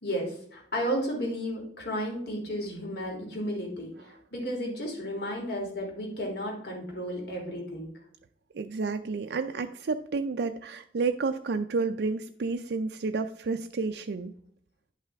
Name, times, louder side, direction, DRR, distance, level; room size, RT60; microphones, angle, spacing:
voice 1, 0.0-7.9, equal, 65° left, 0 dB, 3.0 m, -33 dB
voice 2, 8.5-14.3, right 4 dB, 65° right, 7 dB, 0.4 m, -30 dB
10.5 x 5.7 x 3.5 m, 0.68 s
head